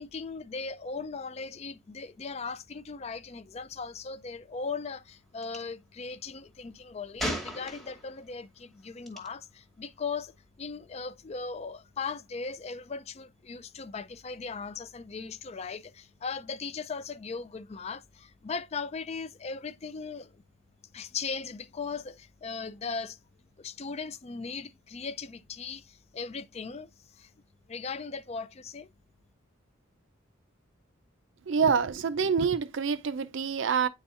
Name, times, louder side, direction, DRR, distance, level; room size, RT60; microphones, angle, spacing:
voice 1, 0.0-10.3 10.6-20.4 20.9-23.2 23.6-27.3 27.7-28.9, left 5 dB, 30° left, 0.4 m, -38 dB
Gunshot gunfire, 5.4-5.6 7.2-8.2 9.1-9.3, equal, ahead, 1.1 m, -34 dB
voice 2, 31.5-33.9, right 6 dB, 65° right, 0.4 m, -26 dB
9.3 x 4.1 x 2.5 m
head